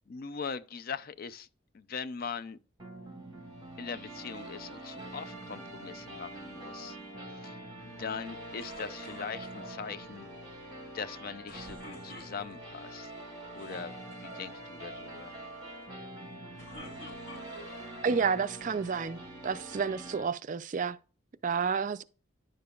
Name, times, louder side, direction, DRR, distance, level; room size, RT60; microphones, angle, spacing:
voice 1, 0.1-1.5 1.7-2.6 3.8-7.0 7.3-7.6 7.9-10.3 10.9-13.1 13.5-15.3, left 6 dB, 45° left, 0.4 m, -41 dB
sound 1, 2.8-20.3, right 1 dB, 20° right, 4.2 m, -45 dB
sound 2, 8.6-9.7 11.5-12.8 13.5-13.8 14.1-14.5 16.3-17.9 18.4-19.2, left 2 dB, 70° left, 4.2 m, -49 dB
voice 2, 18.0-21.0 21.4-22.0, right 5 dB, 40° right, 0.4 m, -30 dB
10.5 x 6.7 x 2.3 m
head